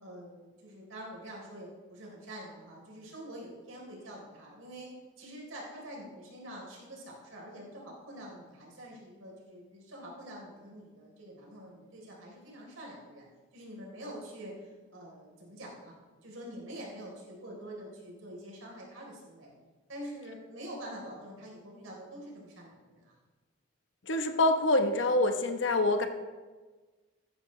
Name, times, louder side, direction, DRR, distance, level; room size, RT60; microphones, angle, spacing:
voice 1, 0.0-4.9 5.2-13.3 13.5-15.9 16.2-19.5 19.9-23.1 26.0-26.1, right 1 dB, 90° right, -2 dB, 3.8 m, -46 dB
voice 2, 24.1-26.1, left 2 dB, 65° left, 7 dB, 1.0 m, -26 dB
14.5 x 10.5 x 3.2 m, 1.3 s
head